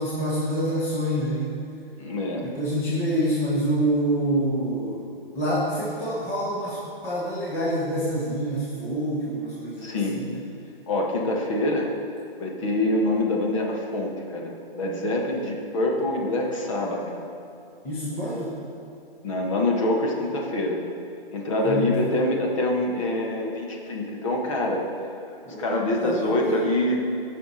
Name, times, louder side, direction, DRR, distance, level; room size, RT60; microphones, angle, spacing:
voice 1, 0.0-1.5 2.4-5.0 5.3-10.4 17.8-18.6 21.6-21.9 25.4-26.8, right 1 dB, 10° left, -8 dB, 0.9 m, -27 dB
voice 2, 2.0-2.5 9.8-10.2 10.9-11.9 12.4-17.3 19.2-20.8 21.3-24.8 25.6-27.0, left 1 dB, 35° left, 0 dB, 1.4 m, -25 dB
16.0 x 5.8 x 4.2 m, 2.6 s
hypercardioid pair, 165°, 29 cm